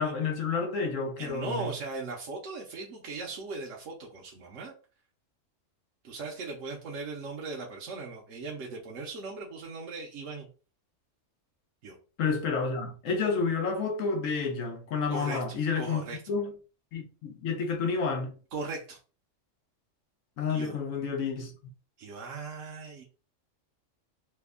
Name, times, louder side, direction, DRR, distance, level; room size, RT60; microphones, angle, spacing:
voice 1, 0.0-1.7 12.2-16.5 16.9-18.3 20.4-21.5, left 5 dB, 90° left, 1.1 m, -30 dB
voice 2, 1.2-4.7 6.0-10.5 11.8-12.0 15.1-16.2 18.5-19.0 20.5-20.8 22.0-23.0, right 3 dB, 70° right, 1.1 m, -38 dB
3.3 x 2.1 x 3.5 m
omnidirectional pair, 1.3 m